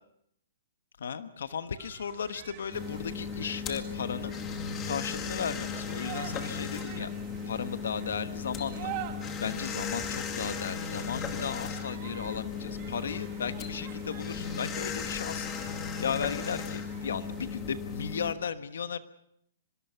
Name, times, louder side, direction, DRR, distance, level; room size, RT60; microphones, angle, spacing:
voice 1, 1.0-4.3 4.8-7.1 7.5-8.9 9.4-19.0, left 7 dB, 80° left, 11 dB, 1.2 m, -35 dB
sound 1, 1.8-17.6, right 13 dB, 35° right, 1.4 m, -47 dB
sound 2, 2.7-18.3, left 6 dB, 20° left, 2.2 m, -36 dB
24.5 x 21.0 x 5.8 m, 0.74 s
hypercardioid pair, 155°, 0 cm